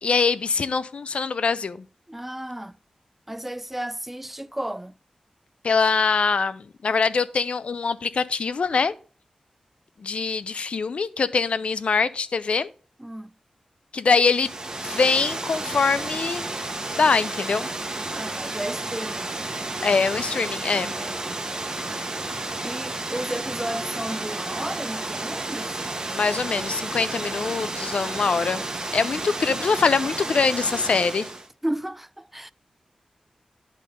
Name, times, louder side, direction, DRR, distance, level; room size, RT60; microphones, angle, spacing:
voice 1, 0.0-1.8 5.6-8.9 10.0-12.7 13.9-14.5 14.8-16.5 16.9-17.7 19.8-20.9 26.1-28.6 28.9-31.3, left 5 dB, 65° left, 0.5 m, -23 dB
voice 2, 2.1-2.8 3.3-4.9 13.0-13.3 18.1-19.3 20.7-21.5 22.3-25.8 29.0-29.1 31.6-32.5, right 1 dB, 10° right, 0.3 m, -33 dB
Water, 14.3-31.5, right 2 dB, 35° right, 1.2 m, -32 dB
10.5 x 3.7 x 5.3 m
wide cardioid pair, 75°, 2 cm